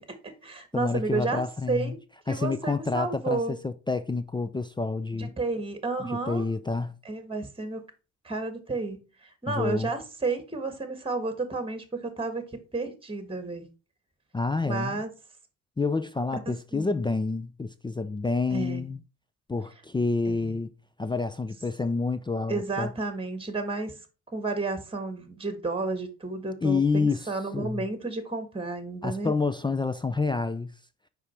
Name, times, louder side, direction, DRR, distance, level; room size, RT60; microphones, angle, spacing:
voice 1, 0.0-1.4 1.7-2.0 2.3-3.6 5.1-6.5 7.0-7.8 8.2-12.4 12.7-13.6 14.6-15.1 16.5-17.1 18.5-18.9 20.2-20.5 22.5-23.9 24.3-29.3, right 3 dB, 15° right, 1.5 m, -32 dB
voice 2, 0.7-2.0 2.3-5.3 6.1-6.9 9.5-9.9 14.3-15.0 15.8-19.0 19.5-20.7 21.0-22.9 26.6-27.9 29.0-30.7, left 3 dB, 15° left, 0.4 m, -28 dB
4.9 x 4.8 x 4.3 m
hypercardioid pair, 60°, 38 cm